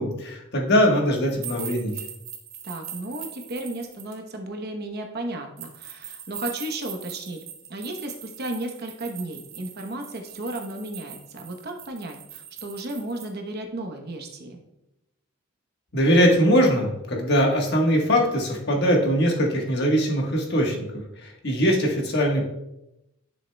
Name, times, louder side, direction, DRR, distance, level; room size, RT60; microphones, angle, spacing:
voice 1, 0.0-1.9 15.9-20.9 21.2-22.4, equal, 55° left, 0 dB, 1.3 m, -21 dB
sound 1, 1.4-4.1 5.6-13.3, right 9 dB, 85° right, 1.4 m, -41 dB
voice 2, 2.6-7.4 7.7-14.6, right 1 dB, 50° right, 4 dB, 0.9 m, -34 dB
11.0 x 6.4 x 2.2 m, 0.89 s
head